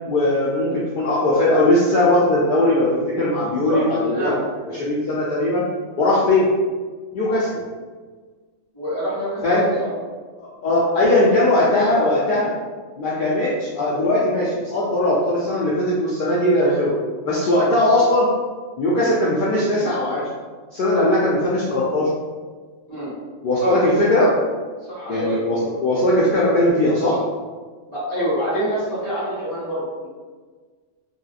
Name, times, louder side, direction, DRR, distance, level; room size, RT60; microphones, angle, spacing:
voice 1, 0.1-4.3 4.7-5.7 6.0-6.5 7.1-7.6 9.4-9.7 10.4-12.5 13.0-17.0 17.2-18.3 18.8-20.3 20.7-22.1 23.4-24.4 25.1-27.2, left 1 dB, 70° left, -6 dB, 0.5 m, -19 dB
voice 2, 3.5-4.4 8.7-9.9 22.9-23.1 23.6-23.8 24.9-25.4 27.9-30.1, equal, 20° right, -13 dB, 1.4 m, -26 dB
2.9 x 2.8 x 2.4 m, 1.5 s
omnidirectional pair, 1.4 m